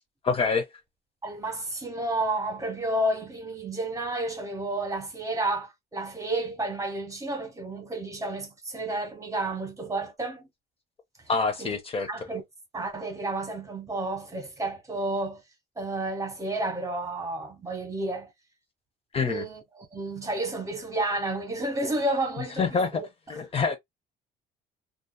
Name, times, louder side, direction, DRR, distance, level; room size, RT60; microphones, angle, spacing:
voice 1, 0.2-0.7 11.3-12.1 19.1-19.5 22.6-22.9 23.3-23.8, left 4 dB, 35° left, 0.6 m, -26 dB
voice 2, 1.2-10.5 11.6-11.8 12.1-12.4 12.7-15.4 15.8-18.3 19.2-23.0, right 2 dB, 20° right, 1.2 m, -31 dB
2.6 x 2.4 x 2.3 m
cardioid pair, 110°, 17 cm